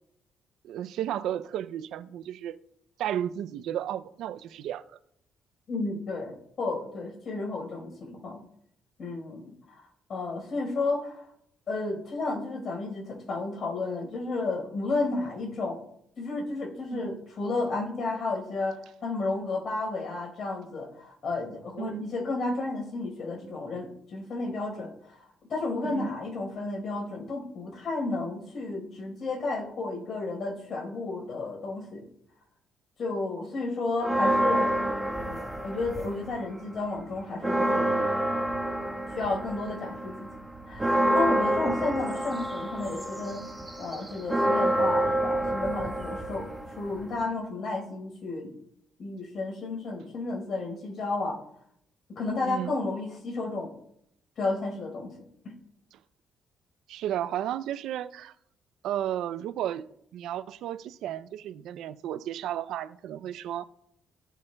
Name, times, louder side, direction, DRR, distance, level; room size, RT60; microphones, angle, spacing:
voice 1, 0.6-2.6 3.0-4.8 16.9-17.2 21.8-22.1 25.8-26.1 52.4-52.8 55.9-56.0 56.9-58.3 58.8-59.9 60.1-63.6, right 11 dB, 85° right, 0.4 m, -33 dB
voice 2, 5.7-8.4 9.0-9.5 10.1-11.3 11.7-15.8 16.2-25.2 25.5-32.0 33.0-34.7 35.2-38.0 39.1-40.3 40.7-43.4 43.8-46.5 46.8-48.5 49.0-51.4 52.1-53.7 54.4-55.2, left 3 dB, 55° left, 4.2 m, -32 dB
sound 1, 34.0-36.4 36.7-47.2, right 1 dB, 10° right, 1.2 m, -28 dB
14.5 x 8.2 x 2.2 m
cardioid pair, 90°, 0 cm